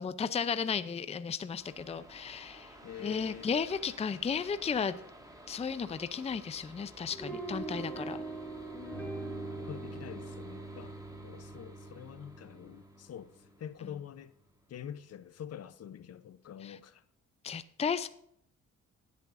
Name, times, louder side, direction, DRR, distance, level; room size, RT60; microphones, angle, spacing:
voice 1, 0.0-2.7 3.0-5.0 5.5-8.2 16.6-16.7 17.4-18.1, left 6 dB, 20° left, 0.5 m, -34 dB
sound 1, 1.5-14.8, equal, 10° right, 2.6 m, -54 dB
voice 2, 2.8-3.5 9.6-10.9 11.2-14.3 14.7-17.0, left 9 dB, 55° left, 0.8 m, -45 dB
sound 2, 7.1-13.4, right 2 dB, 5° left, 2.3 m, -42 dB
19.5 x 8.4 x 2.6 m
cardioid pair, 90°, 30 cm